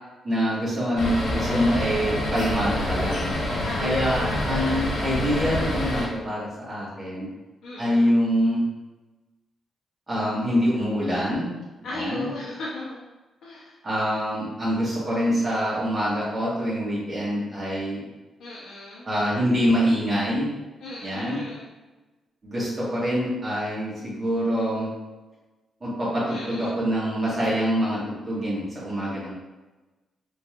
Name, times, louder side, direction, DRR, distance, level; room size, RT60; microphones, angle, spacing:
voice 1, 0.2-3.3 3.8-7.3 7.8-8.6 10.1-11.5 11.9-12.3 13.8-18.1 19.0-20.5 21.0-21.4 22.4-24.9 25.8-29.3, equal, 25° right, -8 dB, 1.5 m, -25 dB
sound 1, 1.0-6.1, left 1 dB, 50° left, 1.1 m, -27 dB
voice 2, 3.6-4.9 7.6-8.1 11.8-13.0 13.4-13.7 18.4-19.1 20.8-21.7 26.3-26.8, left 1 dB, 75° left, -7 dB, 0.7 m, -36 dB
3.7 x 3.1 x 2.5 m, 1.1 s
cardioid pair, 135°, 0 cm